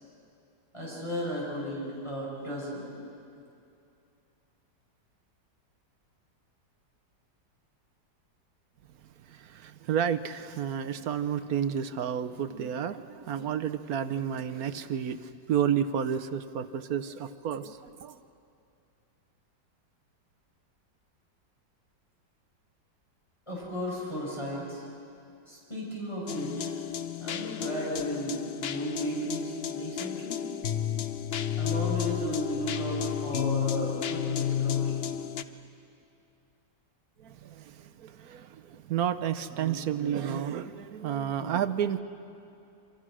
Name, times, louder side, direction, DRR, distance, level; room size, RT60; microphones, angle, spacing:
voice 1, 0.7-2.9 23.5-24.8 25.5-26.7 27.2-30.4 31.6-35.0, equal, 15° left, -6 dB, 5.6 m, -35 dB
voice 2, 9.3-18.2 37.2-42.0, right 8 dB, 65° right, 12 dB, 1.1 m, -31 dB
sound 1, 26.3-35.4, left 9 dB, 80° left, 0.5 m, -32 dB
27.5 x 25.5 x 6.2 m, 2.6 s
omnidirectional pair, 2.0 m